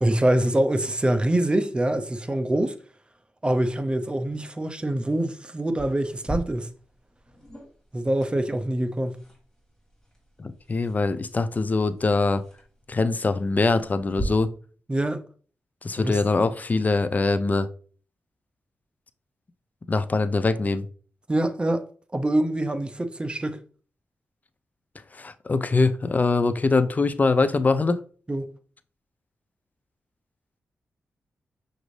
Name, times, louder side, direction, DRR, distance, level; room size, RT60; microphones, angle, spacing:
voice 1, 0.0-2.7 3.4-6.7 7.9-9.2 14.9-15.2 16.0-16.2 21.3-21.8 22.1-23.6 28.3-28.5, right 1 dB, 20° right, 0.5 m, -24 dB
sound 1, 5.8-14.2, right 1 dB, 10° left, 2.3 m, -42 dB
voice 2, 10.4-12.4 12.9-14.5 15.8-17.7 19.9-20.9 25.2-28.0, left 3 dB, 35° left, 0.4 m, -23 dB
6.0 x 2.6 x 3.2 m
cardioid pair, 65°, 5 cm